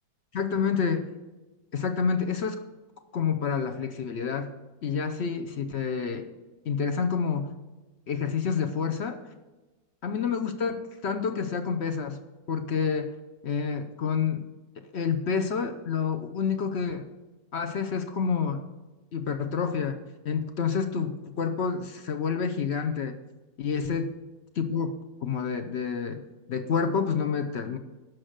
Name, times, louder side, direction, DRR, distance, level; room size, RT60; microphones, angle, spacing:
voice 1, 0.3-1.1 1.7-2.6 3.1-4.5 4.8-6.3 6.6-7.5 8.1-9.2 10.0-12.2 12.5-13.1 13.4-14.5 14.9-17.1 17.5-18.6 19.1-20.0 20.2-23.2 23.6-24.1 24.6-26.2 26.5-27.8, left 6 dB, 60° left, 7 dB, 0.6 m, -28 dB
11.0 x 6.2 x 6.4 m, 1.1 s
omnidirectional pair, 2.0 m